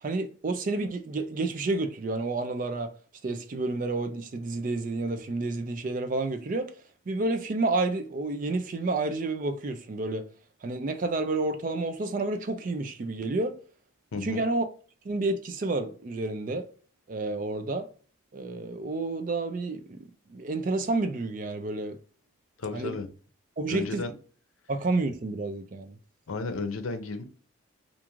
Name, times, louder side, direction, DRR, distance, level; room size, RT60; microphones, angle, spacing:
voice 1, 0.0-2.9 3.2-6.7 7.1-10.3 10.6-13.6 14.2-14.6 15.0-16.6 17.1-17.9 18.3-20.0 20.3-22.0 22.7-23.0 23.6-24.0 24.7-26.0, right 2 dB, 40° right, 0.4 m, -30 dB
voice 2, 14.1-14.4 22.6-23.1 23.7-24.1 26.3-27.2, left 3 dB, 80° left, 0.6 m, -33 dB
2.5 x 2.4 x 2.9 m
head